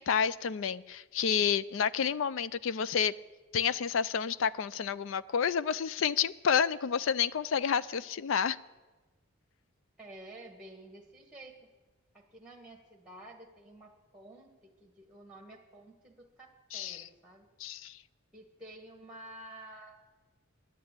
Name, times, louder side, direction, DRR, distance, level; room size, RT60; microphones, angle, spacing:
voice 1, 0.0-3.1 3.5-8.6 16.7-17.1 17.6-18.0, left 7 dB, 65° left, 0.4 m, -29 dB
voice 2, 10.0-11.6 12.1-17.5 18.3-20.0, right 1 dB, 5° right, 1.3 m, -51 dB
10.5 x 9.3 x 8.8 m
head